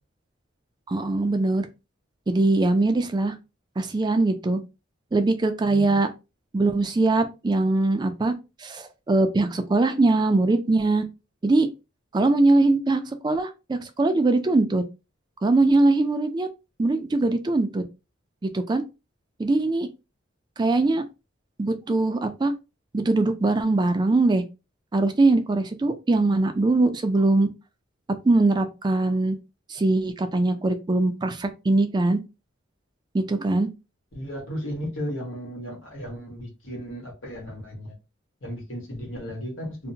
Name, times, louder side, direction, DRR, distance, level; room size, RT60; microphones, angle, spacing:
voice 1, 0.9-1.7 2.3-3.3 3.8-4.6 5.1-6.1 6.5-8.3 8.6-11.0 11.4-11.7 12.1-14.8 15.4-16.5 16.8-17.8 18.4-18.8 19.4-19.9 20.6-21.0 21.6-22.5 22.9-24.4 24.9-27.5 28.2-29.4 29.7-32.2 33.1-33.7, right 2 dB, 20° right, 0.3 m, -22 dB
voice 2, 5.6-6.0 34.1-37.9 38.4-39.9, equal, 90° left, 1.3 m, -35 dB
2.7 x 2.1 x 2.7 m
head